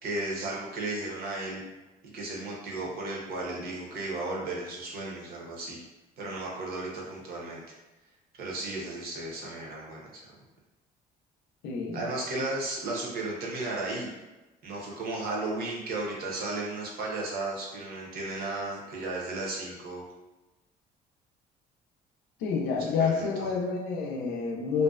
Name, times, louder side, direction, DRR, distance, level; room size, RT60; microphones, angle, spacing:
voice 1, 0.0-1.6 2.1-5.8 6.2-7.6 8.4-10.2 11.9-14.1 14.6-20.0 23.0-23.5, right 2 dB, 65° right, -2 dB, 0.8 m, -34 dB
voice 2, 11.6-12.0 22.4-24.8, left 5 dB, 85° left, 1 dB, 0.5 m, -28 dB
2.6 x 2.1 x 2.4 m, 1.1 s
cardioid pair, 110°, 17 cm